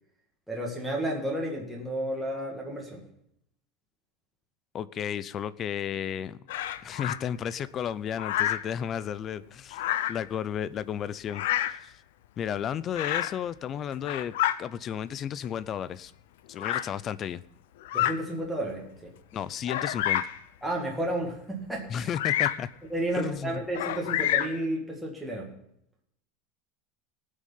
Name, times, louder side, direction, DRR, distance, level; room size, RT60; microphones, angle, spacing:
voice 1, 0.5-3.0 17.9-19.1 20.6-22.1 22.8-25.5, right 1 dB, ahead, -4 dB, 2.0 m, -32 dB
voice 2, 4.7-6.4 6.8-9.8 10.1-11.9 12.4-14.3 14.6-16.1 16.5-17.4 19.3-20.2 21.9-22.7 23.1-23.6, left 9 dB, 25° left, 17 dB, 0.4 m, -33 dB
Bird vocalization bird call bird song, 6.5-7.2 8.2-8.7 9.7-10.3 11.3-11.8 12.9-13.4 13.9-14.6 15.4-15.5 16.6-16.9 17.8-18.2 18.8-18.9 19.7-20.4 22.1-22.7 23.7-24.6, left 12 dB, 85° left, 0.7 m, -28 dB
18.5 x 6.4 x 5.5 m, 0.75 s
supercardioid pair, 175°, 0 cm